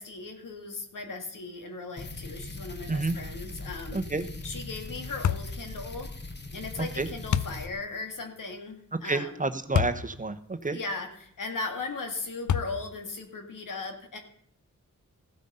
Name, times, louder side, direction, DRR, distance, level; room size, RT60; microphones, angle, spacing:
voice 1, 0.0-4.0 4.4-6.1 6.5-9.5 10.7-14.2, left 3 dB, 85° left, 4 dB, 2.0 m, -37 dB
sound 1, 2.0-7.7, left 2 dB, 35° left, 1.4 m, -40 dB
voice 2, 3.9-4.3 7.0-7.1 9.0-10.8, right 3 dB, 25° right, 10 dB, 0.9 m, -29 dB
sound 2, 5.2-5.6 7.3-7.6 9.7-10.0 10.6-10.7 12.5-13.0, left 9 dB, 70° left, 0.5 m, -26 dB
15.0 x 8.2 x 5.5 m, 0.67 s
wide cardioid pair, 90°, 31 cm